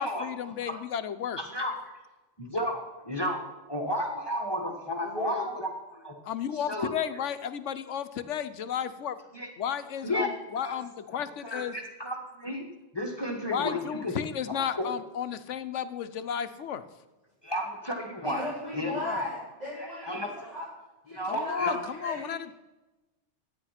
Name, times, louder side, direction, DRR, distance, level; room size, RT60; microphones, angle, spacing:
voice 1, 0.0-1.4 6.2-9.2 9.6-11.8 13.5-16.8 19.0-19.2 21.3-22.5, left 8 dB, 90° left, 11 dB, 1.1 m, -33 dB
voice 2, 2.4-6.1 6.5-6.9 9.3-9.5 10.0-10.3 10.6-10.8 11.4-12.7 12.9-14.1 14.5-14.8 17.4-19.3 19.8-20.3 21.1-21.8 22.1-22.2, left 1 dB, 20° left, 1 dB, 1.4 m, -33 dB
voice 3, 5.0-5.4 18.2-20.6 21.0-22.3, equal, 35° right, -11 dB, 5.4 m, -37 dB
12.0 x 9.3 x 5.8 m, 1.1 s
omnidirectional pair, 1.2 m